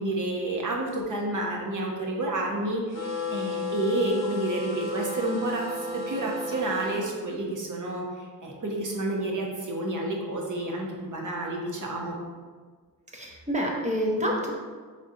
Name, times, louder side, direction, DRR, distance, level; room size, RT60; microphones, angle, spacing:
voice 1, 0.0-5.6 5.9-12.2, right 1 dB, 55° right, -1 dB, 0.8 m, -30 dB
sound 1, 2.9-7.0, left 2 dB, 45° left, 0.8 m, -33 dB
voice 2, 13.1-14.5, equal, 20° right, -1 dB, 0.6 m, -27 dB
3.8 x 3.6 x 2.7 m, 1.5 s
wide cardioid pair, 125°, 36 cm